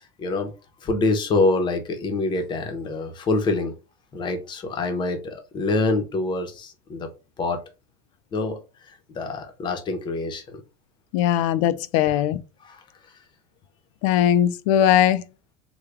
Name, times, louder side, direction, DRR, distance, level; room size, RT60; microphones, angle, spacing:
voice 1, 0.2-0.5 0.8-3.7 4.1-7.1 7.4-7.6 8.3-8.6 9.2-10.6 11.4-11.5 12.1-12.2 12.6-12.8, left 3 dB, 25° left, 0.7 m, -25 dB
voice 2, 11.1-12.4 14.0-15.2, left 11 dB, 65° left, 0.4 m, -19 dB
3.3 x 2.2 x 3.5 m
supercardioid pair, 140°, 19 cm